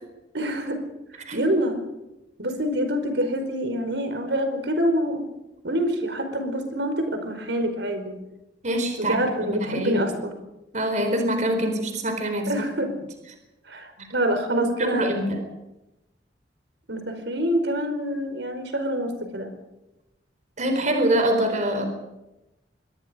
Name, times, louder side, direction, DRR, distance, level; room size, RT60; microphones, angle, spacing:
voice 1, 0.3-0.8 1.1-1.8 2.4-5.2 5.6-8.2 9.0-10.3 12.5-12.9 13.6-15.1 16.9-19.5, equal, 80° right, 7 dB, 4.9 m, -26 dB
voice 2, 8.6-10.0 10.7-12.5 12.8-12.9 14.5-15.4 20.6-21.8, right 1 dB, 45° right, 6 dB, 4.2 m, -25 dB
25.5 x 23.0 x 5.2 m, 0.94 s
head